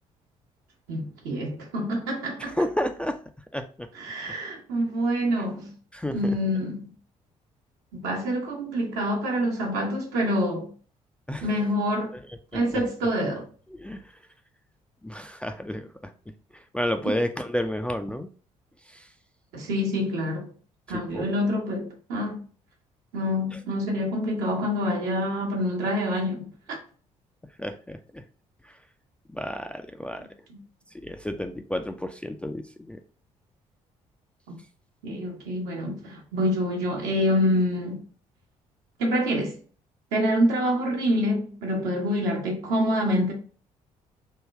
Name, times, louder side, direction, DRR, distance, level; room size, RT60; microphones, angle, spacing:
voice 1, 0.9-2.6 3.9-5.7 6.1-6.9 7.9-10.7 11.4-12.1 12.5-13.5 17.1-17.2 19.5-20.5 20.9-22.4 23.1-26.8 30.5-30.6 35.0-38.0 39.0-39.6 40.1-43.3, equal, 70° right, 1.0 m, -26 dB
voice 2, 2.5-3.2 3.5-3.9 5.9-6.4 11.3-11.5 12.1-12.2 12.7-12.8 13.7-14.0 15.0-16.1 16.5-18.3 18.9-19.1 20.9-21.3 27.6-28.2 29.3-30.3 31.0-33.0, left 1 dB, 5° left, 0.3 m, -31 dB
3.5 x 2.2 x 3.4 m
figure-of-eight pair, 45°, 18 cm